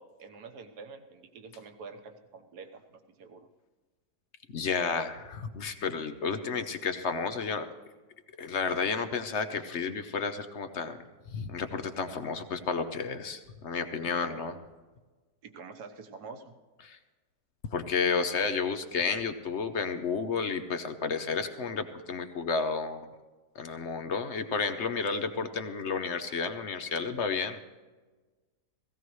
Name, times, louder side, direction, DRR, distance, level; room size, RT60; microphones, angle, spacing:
voice 1, 0.0-3.5 14.2-14.5 15.4-16.6, right 4 dB, 75° right, 6 dB, 1.6 m, -47 dB
voice 2, 4.5-7.7 8.4-11.0 11.3-14.5 16.8-17.0 17.7-23.1 23.6-27.6, left 5 dB, 55° left, 9 dB, 0.9 m, -31 dB
17.0 x 16.5 x 3.1 m, 1.3 s
omnidirectional pair, 1.8 m